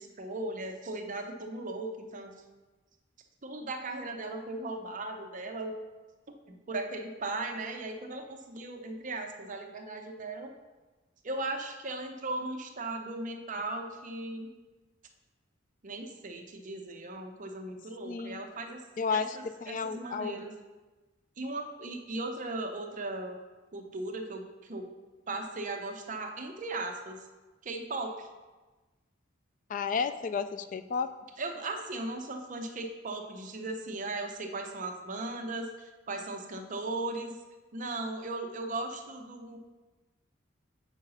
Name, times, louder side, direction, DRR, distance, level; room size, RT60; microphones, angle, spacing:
voice 1, 0.0-2.3 3.4-5.8 6.5-10.5 11.2-14.5 15.8-18.8 19.1-20.5 21.4-23.4 23.7-24.9 25.3-27.2 27.6-28.3 31.4-37.4 37.7-39.6, right 2 dB, 40° right, 4 dB, 0.7 m, -37 dB
voice 2, 18.1-18.4 19.0-19.3 19.6-20.4 29.7-31.1, left 5 dB, 40° left, 11 dB, 0.4 m, -32 dB
8.1 x 4.8 x 5.5 m, 1.2 s
head